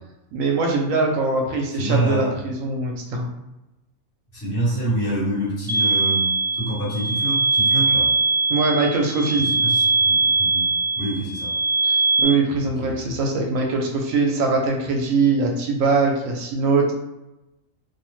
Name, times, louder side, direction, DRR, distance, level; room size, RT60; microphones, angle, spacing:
voice 1, 0.3-3.3 8.5-9.5 11.8-16.9, right 3 dB, 80° right, 0 dB, 1.0 m, -22 dB
voice 2, 1.7-2.4 4.3-8.1 9.3-11.5 12.8-13.0, right 1 dB, 45° left, -7 dB, 1.1 m, -27 dB
sound 1, 5.7-12.3, right 3 dB, 45° right, 1.0 m, -21 dB
2.7 x 2.0 x 3.0 m, 0.94 s
omnidirectional pair, 1.4 m